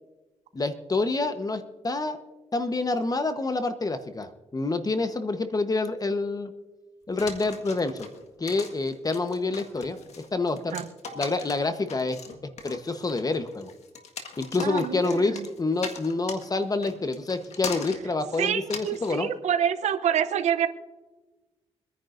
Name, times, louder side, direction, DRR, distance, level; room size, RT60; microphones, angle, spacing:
voice 1, 0.5-2.2 2.5-6.5 7.1-8.1 8.4-10.0 10.3-10.7 11.1-12.2 12.6-13.7 14.4-19.3, left 3 dB, 35° left, 9 dB, 1.1 m, -27 dB
sound 1, 7.2-19.2, left 5 dB, 75° left, 1.7 m, -40 dB
voice 2, 14.6-15.4 18.4-20.7, right 9 dB, 85° right, 11 dB, 0.8 m, -27 dB
25.0 x 10.0 x 2.6 m, 1.2 s
cardioid pair, 65°, 11 cm